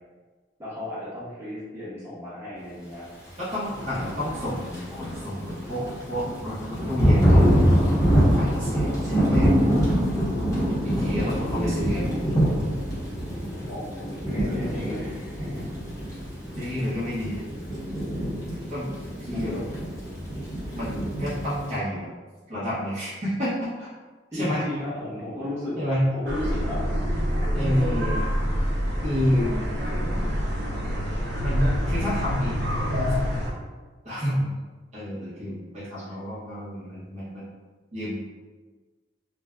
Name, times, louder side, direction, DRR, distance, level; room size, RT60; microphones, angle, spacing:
voice 1, 0.6-3.1 11.5-12.2 13.7-15.8 19.3-19.7 24.3-25.8 26.1-26.9 27.5-28.1, left 1 dB, 15° right, -10 dB, 1.1 m, -34 dB
voice 2, 3.4-8.0 8.3-9.7 10.8-12.1 16.6-17.6 18.7-18.9 19.2-19.6 20.7-22.1 22.5-23.9 24.3-24.6 25.8-26.0 27.5-28.3 29.0-29.5 31.4-33.2 34.0-34.6 34.9-37.4 37.9-38.1, equal, 40° right, -10 dB, 0.8 m, -29 dB
Thunder / Rain, 3.6-21.7, equal, 20° left, 0.8 m, -25 dB
sound 1, 26.3-33.5, equal, 65° right, 0.6 m, -26 dB
2.5 x 2.2 x 3.4 m, 1.3 s
head